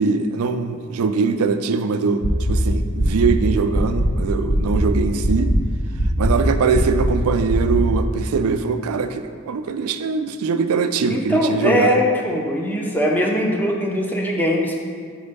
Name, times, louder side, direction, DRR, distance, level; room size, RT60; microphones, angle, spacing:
voice 1, 0.0-5.5 6.2-12.0, right 5 dB, 70° right, 9 dB, 0.4 m, -22 dB
sound 1, 2.2-2.6 3.0-3.3 3.7-4.1 4.5-4.8 5.2-5.6 6.0-6.3 6.7-7.1 7.5-7.8, right 1 dB, 55° left, 1.0 m, -20 dB
voice 2, 11.1-14.8, equal, 10° left, 0 dB, 0.6 m, -21 dB
5.3 x 4.4 x 5.2 m, 2.1 s
head